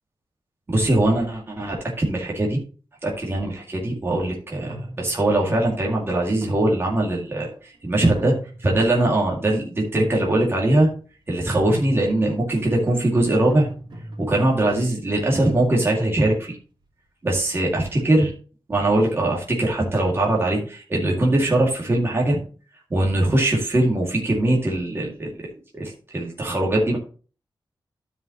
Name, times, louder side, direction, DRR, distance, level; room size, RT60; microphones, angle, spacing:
voice 1, 0.7-2.6 3.0-8.3 8.6-10.9 11.3-13.7 14.2-16.6 17.2-18.3 18.7-22.4 22.9-27.0, right 1 dB, 30° right, -2 dB, 2.2 m, -21 dB
sound 1, 3.6-3.8 4.6-5.4 6.4-7.5 7.9-9.1 9.7-10.6 11.7-12.4 13.5-15.1, equal, 70° right, 2.9 m, -38 dB
12.5 x 5.6 x 3.0 m, 0.39 s
wide cardioid pair, 170°, 8 cm